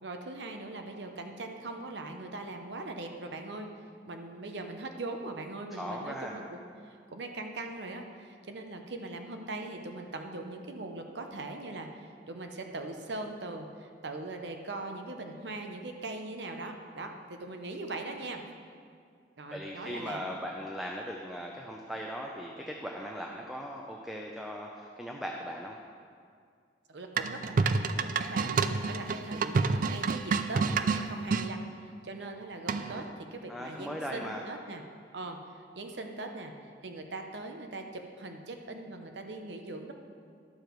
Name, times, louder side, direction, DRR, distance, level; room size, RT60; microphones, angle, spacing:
voice 1, 0.0-3.7 4.1-18.4 19.4-20.3 26.9-31.7 32.0-34.8 35.1-36.5 36.8-39.9, right 2 dB, 80° right, 4 dB, 0.9 m, -41 dB
voice 2, 5.7-6.4 19.5-25.8 33.5-34.4, equal, ahead, -1 dB, 0.6 m, -39 dB
sound 1, 27.2-31.5 32.7-33.1, right 4 dB, 50° right, 0.4 m, -28 dB
11.0 x 7.0 x 4.6 m, 2.2 s
head